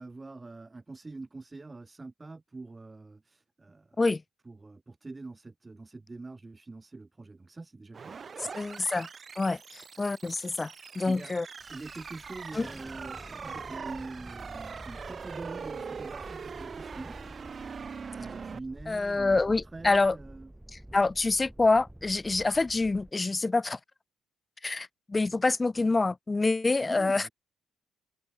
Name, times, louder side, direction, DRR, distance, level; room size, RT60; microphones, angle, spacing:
voice 1, 0.0-4.0 4.5-8.2 11.0-11.3 11.7-17.2 18.2-20.5 26.8-27.3, right 3 dB, 20° right, 4.3 m, -44 dB
sound 1, 7.9-18.6, right 6 dB, 40° right, 0.6 m, -42 dB
voice 2, 8.4-9.1 9.4-11.5 12.5-12.7 18.9-20.2 20.7-23.8 24.6-27.3, left 3 dB, 25° left, 0.7 m, -27 dB
Thunderstorm, 11.6-23.1, right 1 dB, 5° right, 1.1 m, -49 dB
cardioid pair, 90°, 0 cm